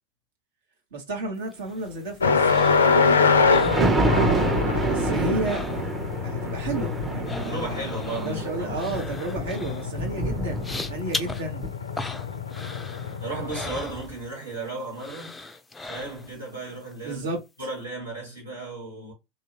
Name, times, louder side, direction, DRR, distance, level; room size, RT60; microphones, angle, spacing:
voice 1, 0.9-2.5 4.8-5.6 6.2-11.7 17.0-17.4, right 2 dB, 65° right, 1.1 m, -32 dB
sound 1, 1.5-4.6 4.8-6.2 6.4-14.6 15.0-16.5 16.9-17.0, left 2 dB, 10° left, 0.4 m, -39 dB
sound 2, 2.2-13.7, left 5 dB, 75° left, 0.4 m, -25 dB
Thunder, 3.1-11.2 11.6-11.7, right 2 dB, 20° right, 0.7 m, -28 dB
voice 2, 7.4-8.8 13.2-15.4 15.9-17.3 17.6-19.1, right 2 dB, 80° right, 1.9 m, -35 dB
2.8 x 2.7 x 2.8 m
figure-of-eight pair, 80°, 0 cm